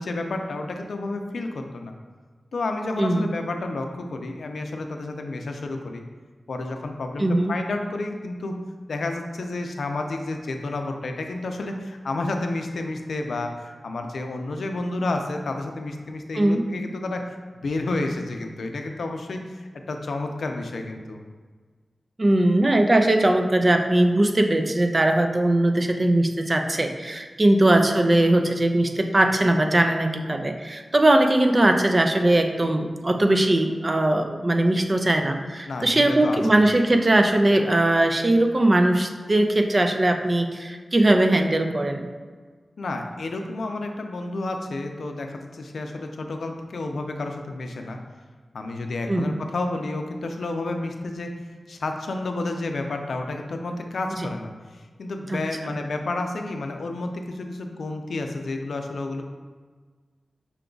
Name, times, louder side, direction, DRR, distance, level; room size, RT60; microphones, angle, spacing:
voice 1, 0.0-1.9 2.5-6.0 6.5-8.6 8.9-17.2 17.6-21.2 35.6-36.6 42.8-48.0 48.5-51.3 51.7-54.5 55.0-59.2, left 2 dB, 80° left, 4 dB, 0.4 m, -30 dB
voice 2, 3.0-3.3 7.2-7.5 16.3-16.6 22.2-42.1 49.1-49.3 55.3-55.4, right 1 dB, 30° right, 5 dB, 0.4 m, -20 dB
5.7 x 2.3 x 3.8 m, 1.5 s
wide cardioid pair, 100°, 0 cm